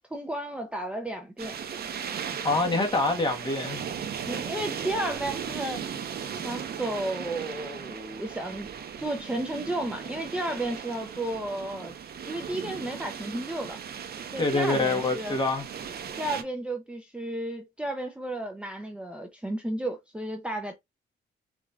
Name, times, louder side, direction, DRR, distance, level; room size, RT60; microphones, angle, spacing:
voice 1, 0.1-1.6 4.2-5.9 6.4-8.7 9.0-11.9 12.2-13.8 14.3-15.4 16.2-20.7, right 1 dB, 5° right, 0.6 m, -33 dB
sound 1, 1.4-16.4, right 7 dB, 50° right, 0.8 m, -37 dB
voice 2, 2.4-3.8 14.4-15.6, left 2 dB, 25° left, 1.2 m, -25 dB
4.9 x 2.6 x 2.3 m
cardioid pair, 90°, 20 cm